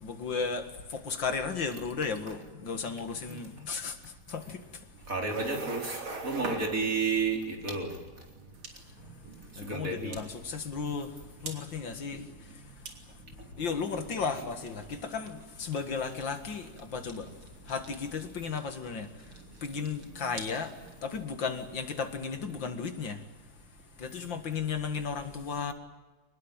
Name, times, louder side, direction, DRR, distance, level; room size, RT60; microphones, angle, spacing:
voice 1, 0.0-4.6 9.6-11.1 11.4-12.3 13.6-17.3 17.7-19.1 19.6-20.7 21.0-23.2 24.0-25.7, left 5 dB, 65° left, 8 dB, 2.5 m, -34 dB
sound 1, 4.9-21.2, right 3 dB, 85° right, 4.0 m, -46 dB
voice 2, 5.1-8.0 9.6-10.2, right 4 dB, 40° right, 2 dB, 4.4 m, -31 dB
25.0 x 20.5 x 9.0 m, 1.2 s
omnidirectional pair, 2.2 m